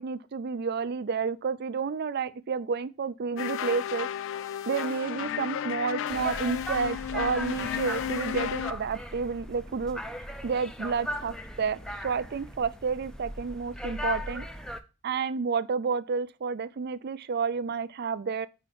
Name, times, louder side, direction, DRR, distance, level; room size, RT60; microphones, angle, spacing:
voice 1, 0.0-4.1 4.7-10.0 10.4-14.5 15.0-18.5, right 5 dB, 50° right, 0.4 m, -30 dB
sound 1, 3.4-8.7, left 9 dB, 65° left, 0.3 m, -33 dB
sound 2, 6.1-14.8, left 1 dB, 5° left, 0.5 m, -38 dB
5.0 x 4.8 x 5.8 m
head